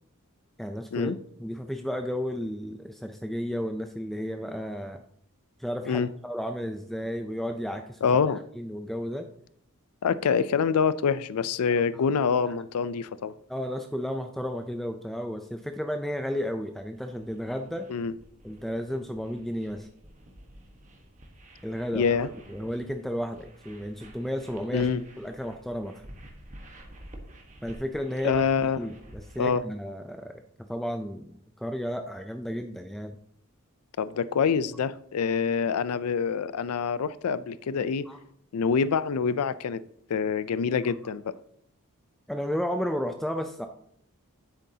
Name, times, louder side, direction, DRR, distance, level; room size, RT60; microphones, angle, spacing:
voice 1, 0.6-1.1 1.4-5.0 5.6-8.0 8.6-9.3 13.5-17.9 18.4-19.9 21.6-22.2 22.5-24.9 25.2-26.0 27.6-28.5 28.8-33.2 38.1-38.2 42.3-43.7, equal, ahead, 0.4 m, -33 dB
voice 2, 8.0-8.4 10.0-13.3 17.9-18.1 21.9-22.3 24.7-25.0 28.2-28.8 29.4-29.6 34.0-38.1 38.5-39.8 40.1-41.4, left 6 dB, 75° left, 0.4 m, -26 dB
sound 1, 16.7-29.6, right 1 dB, 35° right, 1.3 m, -50 dB
9.9 x 8.0 x 2.8 m
head